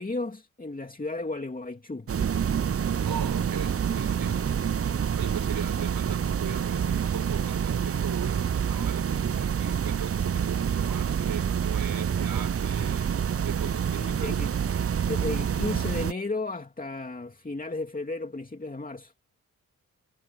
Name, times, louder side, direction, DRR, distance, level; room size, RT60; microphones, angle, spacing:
voice 1, 0.0-2.1 14.0-14.5 15.1-19.1, left 3 dB, 25° left, 2.5 m, -34 dB
sound 1, 2.1-16.1, right 8 dB, 40° right, 0.7 m, -27 dB
voice 2, 3.1-4.6 5.1-14.3, right 8 dB, 80° right, 4.7 m, -39 dB
cardioid pair, 50°, 35 cm